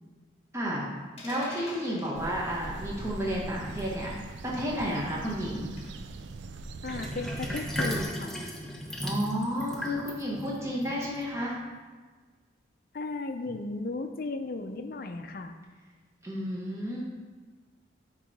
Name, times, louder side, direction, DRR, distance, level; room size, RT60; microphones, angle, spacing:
voice 1, 0.5-0.8 1.2-5.7 9.0-11.5 16.2-17.0, equal, 15° right, -5 dB, 1.1 m, -31 dB
sound 1, 1.2-2.2 3.8-4.0 5.8-6.1, left 2 dB, 35° left, 1.3 m, -45 dB
sound 2, 2.1-8.1, right 3 dB, 70° right, 0.4 m, -42 dB
voice 2, 6.8-8.4 12.9-15.5, left 3 dB, 50° left, 7 dB, 0.5 m, -35 dB
Sink (filling or washing), 6.9-11.6, equal, ahead, 0.5 m, -36 dB
8.2 x 3.1 x 4.7 m, 1.4 s
head